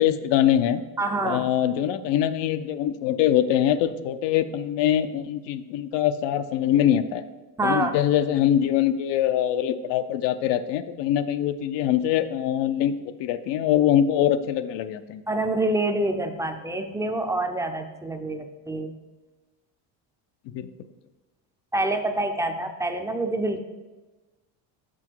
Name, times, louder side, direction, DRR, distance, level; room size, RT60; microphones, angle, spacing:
voice 1, 0.0-0.8 1.2-7.2 7.6-15.2 20.5-20.7, left 11 dB, 70° left, 11 dB, 0.6 m, -23 dB
voice 2, 1.0-1.5 7.6-7.9 15.3-18.9 21.7-23.6, right 2 dB, 5° right, 6 dB, 0.5 m, -26 dB
6.2 x 5.8 x 4.5 m, 1.2 s
cardioid pair, 110°, 45 cm